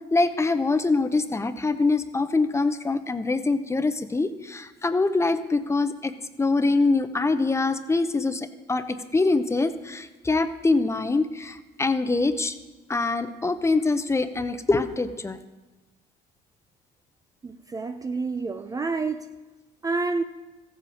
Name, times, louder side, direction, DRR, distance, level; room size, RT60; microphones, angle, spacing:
voice 1, 0.1-6.1 6.4-12.5 12.9-15.4, left 3 dB, 15° left, 10 dB, 0.7 m, -24 dB
voice 2, 17.4-19.3 19.8-20.2, right 4 dB, 20° right, 9 dB, 0.5 m, -28 dB
15.0 x 7.7 x 5.1 m, 1.1 s
cardioid pair, 110°, 17 cm